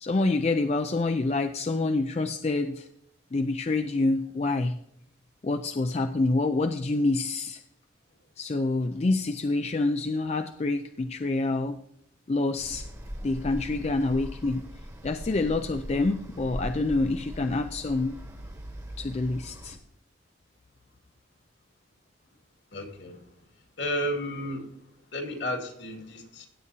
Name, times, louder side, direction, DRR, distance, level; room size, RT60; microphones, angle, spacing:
voice 1, 0.0-2.9 3.3-4.7 5.4-7.6 8.4-11.8 12.3-12.9 13.2-14.6 15.0-18.2 19.0-19.8, left 2 dB, 35° left, 7 dB, 0.4 m, -27 dB
sound 1, 12.6-19.8, equal, 15° right, 1.4 m, -40 dB
voice 2, 22.7-23.2 23.8-24.7 25.1-26.5, equal, 65° left, 3 dB, 2.2 m, -32 dB
16.5 x 8.2 x 2.8 m, 0.73 s
head